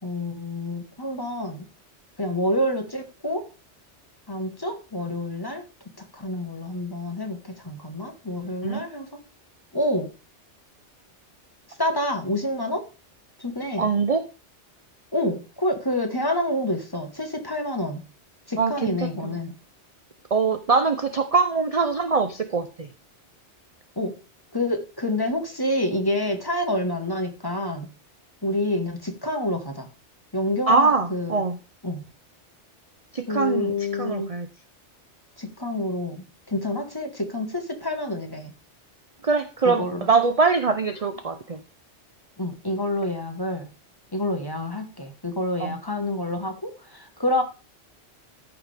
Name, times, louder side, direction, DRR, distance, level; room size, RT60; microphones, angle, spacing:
voice 1, 0.0-1.6 2.2-3.4 4.3-5.6 6.0-9.1 9.7-10.1 11.8-12.9 13.4-13.9 15.1-18.0 18.5-19.5 24.0-24.1 24.5-27.9 28.4-29.9 30.3-31.4 31.8-32.0 33.3-34.3 35.4-38.5 39.6-40.1 42.4-43.7 44.1-47.4, left 1 dB, 20° left, 5 dB, 1.3 m, -28 dB
voice 2, 13.8-14.2 18.6-19.4 20.3-22.9 30.7-31.6 33.1-34.5 39.2-41.6 45.6-45.8, right 4 dB, 40° right, 8 dB, 0.6 m, -23 dB
14.0 x 5.9 x 3.4 m, 0.33 s
omnidirectional pair, 1.2 m